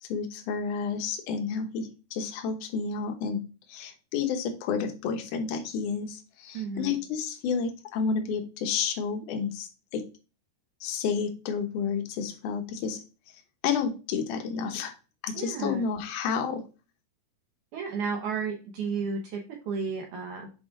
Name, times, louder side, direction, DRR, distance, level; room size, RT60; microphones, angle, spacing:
voice 1, 0.0-3.4 3.7-10.0 10.8-13.0 13.6-14.9 15.2-16.6, left 6 dB, 70° left, 5 dB, 1.9 m, -30 dB
voice 2, 6.5-7.0 15.3-15.9 17.7-20.5, right 5 dB, 75° right, 1 dB, 1.8 m, -33 dB
6.9 x 4.7 x 3.7 m, 0.32 s
omnidirectional pair, 5.0 m